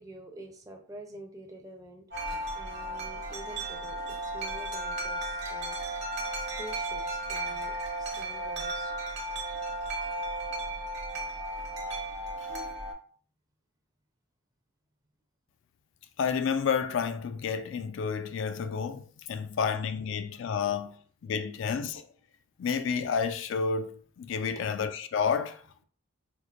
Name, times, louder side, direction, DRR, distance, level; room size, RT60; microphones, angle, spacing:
voice 1, 0.0-2.0 2.5-5.8 6.3-8.9 24.6-24.8, right 1 dB, 15° right, 0.5 m, -47 dB
Wind chime, 2.1-12.9, right 1 dB, 55° right, 0.9 m, -35 dB
voice 2, 16.2-21.0 21.2-22.1 22.6-23.9 24.2-25.8, left 6 dB, 65° left, 0.3 m, -30 dB
4.6 x 2.5 x 2.4 m
head